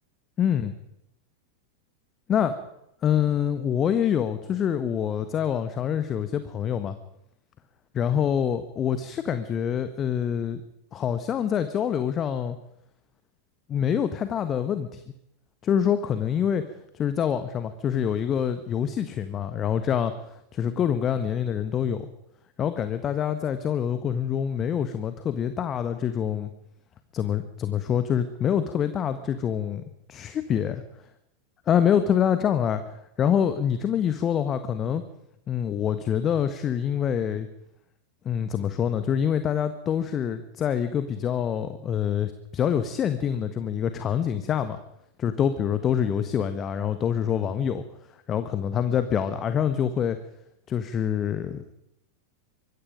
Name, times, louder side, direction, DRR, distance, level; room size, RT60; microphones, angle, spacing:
voice 1, 0.4-0.7 2.3-2.5 3.0-6.9 7.9-10.6 10.9-12.6 13.7-15.0 15.6-16.6 16.9-22.1 22.6-26.5 27.1-29.8 30.1-30.7 31.7-32.8 33.2-35.0 35.5-37.5 38.2-44.8 45.2-47.8 48.3-50.2 50.7-51.7, left 8 dB, 25° left, 10 dB, 1.3 m, -26 dB
24.5 x 22.0 x 5.2 m, 0.79 s
figure-of-eight pair, 90°, 0 cm